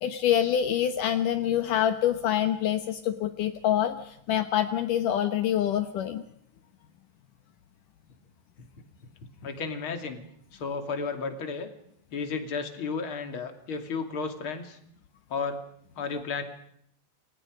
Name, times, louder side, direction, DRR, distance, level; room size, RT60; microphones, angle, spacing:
voice 1, 0.0-6.2, left 10 dB, 80° left, 9 dB, 1.9 m, -26 dB
voice 2, 9.4-10.3 10.5-11.7 12.1-14.8 15.3-15.6 16.0-16.4, left 5 dB, 35° left, 7 dB, 2.4 m, -33 dB
29.0 x 25.5 x 5.1 m, 0.68 s
omnidirectional pair, 5.5 m